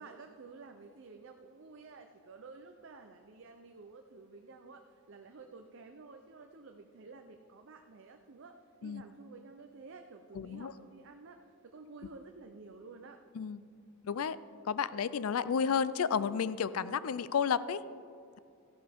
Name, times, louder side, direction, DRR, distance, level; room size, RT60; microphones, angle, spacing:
voice 1, 0.0-13.2, right 3 dB, 65° right, 5 dB, 0.6 m, -52 dB
voice 2, 10.3-10.7 13.4-13.6 14.0-14.4 14.7-17.8, left 6 dB, 85° left, 16 dB, 0.4 m, -31 dB
14.0 x 12.0 x 3.5 m, 2.5 s
head